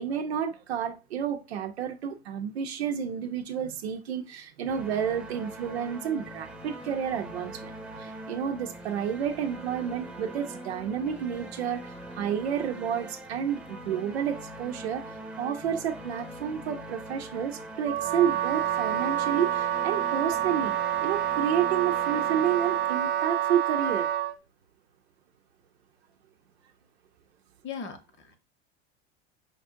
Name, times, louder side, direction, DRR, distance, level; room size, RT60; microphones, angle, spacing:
voice 1, 0.0-7.7 8.0-15.1 15.4-24.1, right 8 dB, 85° right, 0.6 m, -30 dB
sound 1, 4.7-23.6, right 1 dB, 5° right, 0.8 m, -42 dB
Wind instrument woodwind instrument, 17.8-24.4, right 11 dB, 35° right, 0.5 m, -28 dB
voice 2, 27.6-28.4, left 6 dB, 40° left, 1.0 m, -39 dB
5.3 x 2.5 x 2.6 m
hypercardioid pair, 85°, 31 cm